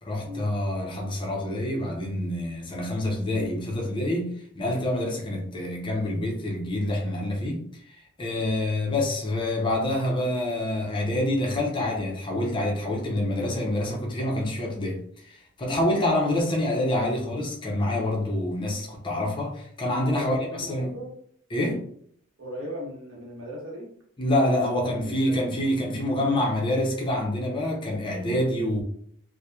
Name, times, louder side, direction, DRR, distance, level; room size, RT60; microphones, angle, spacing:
voice 1, 0.0-7.6 7.9-20.9 21.5-21.9 24.2-28.8, left 1 dB, 25° left, 0.5 m, -27 dB
voice 2, 20.1-21.1 22.4-23.9 24.6-25.5, equal, 70° right, 1.0 m, -37 dB
2.8 x 2.1 x 2.2 m
head